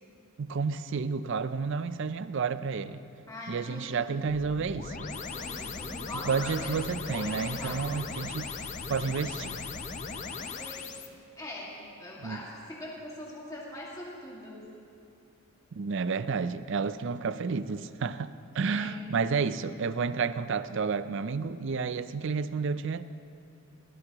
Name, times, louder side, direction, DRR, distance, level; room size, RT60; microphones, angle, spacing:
voice 1, 0.4-3.0 3.5-5.1 6.2-8.5 8.9-9.6 12.2-12.4 15.7-23.0, right 5 dB, 55° right, 13 dB, 0.4 m, -31 dB
voice 2, 3.3-4.2 5.3-6.8 7.1-7.9 10.4-10.9 11.4-14.7 18.6-19.0, left 1 dB, 15° left, -5 dB, 2.0 m, -42 dB
sound 1, 4.3-11.1, left 4 dB, 35° left, 0.6 m, -38 dB
21.0 x 16.5 x 3.0 m, 2.6 s
head